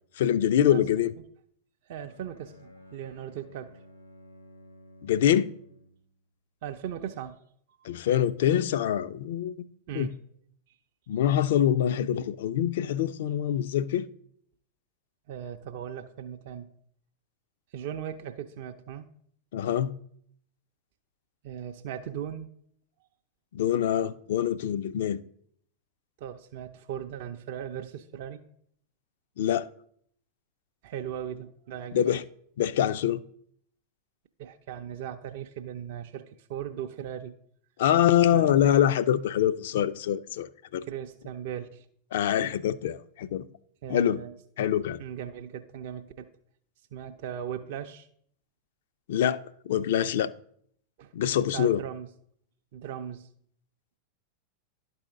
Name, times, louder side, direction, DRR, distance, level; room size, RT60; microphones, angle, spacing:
voice 1, 0.2-1.1 5.0-5.5 7.8-9.5 9.9-10.1 11.1-14.1 19.5-19.9 23.5-25.2 29.4-29.7 31.9-32.2 32.6-33.2 37.8-40.8 42.1-43.4 43.9-44.2 44.6-45.0 49.1-49.4 49.7-50.3 51.1-51.8, left 10 dB, 55° left, 0.3 m, -25 dB
voice 2, 1.9-3.8 6.6-7.4 7.9-8.0 9.9-10.2 15.3-16.7 17.7-19.1 21.4-22.5 26.2-28.4 30.8-32.2 34.4-37.3 38.3-38.6 40.8-41.9 43.8-44.3 45.0-46.3 46.9-48.1 51.0-51.1 51.5-52.1 52.7-53.3, right 9 dB, 50° right, 0.4 m, -38 dB
Bowed string instrument, 2.0-6.1, equal, 80° left, 0.9 m, -53 dB
11.5 x 4.1 x 3.7 m
figure-of-eight pair, 90°, 0 cm